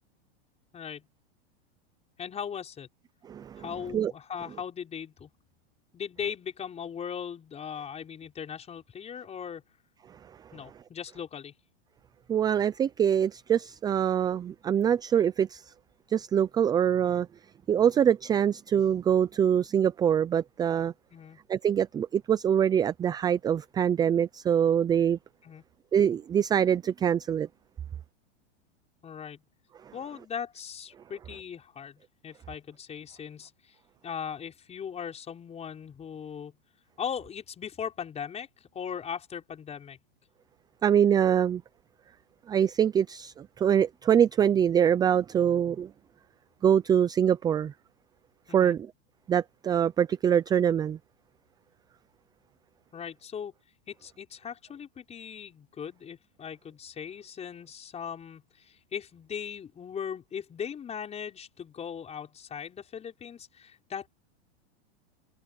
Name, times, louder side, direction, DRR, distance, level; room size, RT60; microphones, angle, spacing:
voice 1, 0.7-1.1 2.2-2.9 3.6-5.3 5.9-9.6 10.5-11.5 21.1-21.4 25.4-25.6 29.0-29.4 29.9-33.8 34.0-36.6 37.0-40.0 48.5-48.8 52.9-53.5 53.9-64.1, left 7 dB, 20° left, 5.6 m, -39 dB
voice 2, 3.3-3.6 3.9-4.1 12.3-15.7 16.1-17.3 17.7-20.9 21.5-25.2 25.9-27.5 40.8-41.6 42.5-45.9 46.6-47.7 48.5-48.8 49.3-51.0, right 8 dB, 10° right, 0.5 m, -24 dB
supercardioid pair, 140°, 32 cm